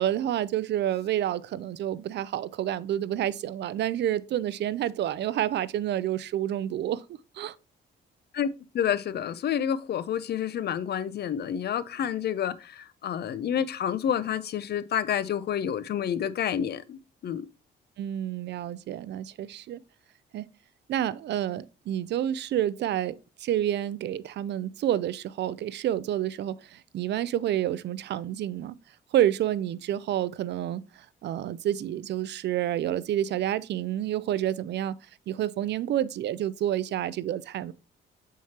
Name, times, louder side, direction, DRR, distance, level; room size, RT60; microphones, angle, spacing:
voice 1, 0.0-7.0 7.3-7.5 18.0-19.8 20.3-20.5 20.9-28.8 29.1-35.0 35.3-37.7, right 11 dB, 60° right, 0.4 m, -29 dB
voice 2, 8.7-17.4, left 9 dB, 55° left, 0.5 m, -29 dB
7.1 x 4.7 x 2.8 m
cardioid pair, 90°, 20 cm